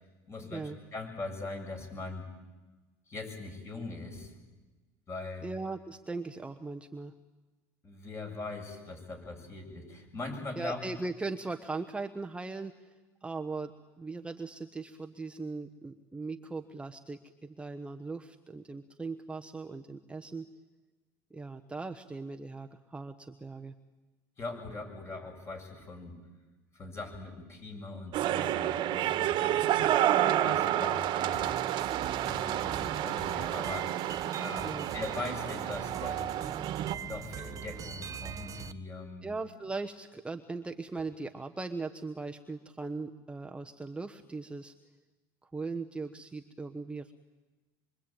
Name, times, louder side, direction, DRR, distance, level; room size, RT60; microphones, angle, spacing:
voice 1, 0.3-2.2 3.1-4.4 5.1-5.5 7.8-10.8 24.4-26.2 26.7-29.9 30.4-31.6 32.2-33.9 34.4-36.3 37.0-39.3, left 3 dB, 30° left, 4 dB, 7.5 m, -41 dB
voice 2, 5.4-7.1 10.6-12.9 13.2-13.7 14.0-20.5 21.3-23.7 34.6-34.9 39.2-44.7 45.4-47.1, right 3 dB, 10° right, 5 dB, 1.2 m, -39 dB
sound 1, 28.1-36.9, right 12 dB, 55° right, 1.6 m, -30 dB
sound 2, 31.3-38.7, right 8 dB, 35° right, 1.3 m, -42 dB
26.0 x 24.5 x 9.0 m, 1.2 s
supercardioid pair, 115°, 9 cm